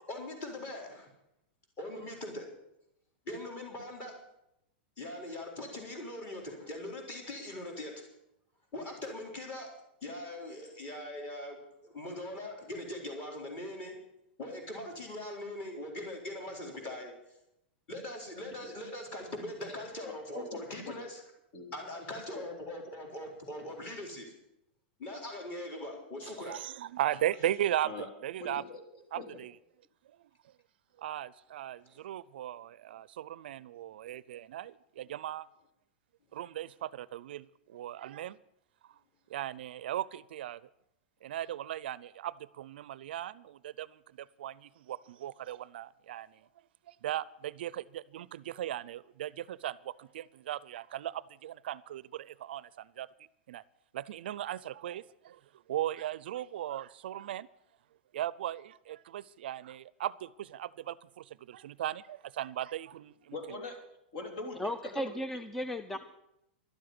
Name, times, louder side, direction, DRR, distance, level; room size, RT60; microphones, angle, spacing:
voice 1, 0.1-1.1 1.8-2.5 3.3-4.1 5.0-7.9 8.7-9.7 10.0-14.0 14.4-17.1 17.9-21.2 21.7-24.3 25.0-26.6 31.9-32.1, left 1 dB, 30° left, 1 dB, 4.0 m, -41 dB
voice 2, 20.0-20.6 20.9-21.0 21.5-21.7 27.8-28.1 28.4-29.2 63.3-63.8 64.1-64.6 64.9-65.0, left 3 dB, 55° left, 4 dB, 3.5 m, -42 dB
voice 3, 26.4-28.6 29.1-29.5 31.0-35.5 36.3-37.5 37.7-38.4 39.3-40.6 41.2-46.3 46.9-53.1 53.5-53.6 53.9-55.4 55.7-57.5 58.1-63.3, right 12 dB, 70° right, 20 dB, 0.5 m, -37 dB
voice 4, 64.6-66.0, equal, 5° left, 10 dB, 0.4 m, -35 dB
12.0 x 7.8 x 9.6 m, 0.83 s
supercardioid pair, 155°, 6 cm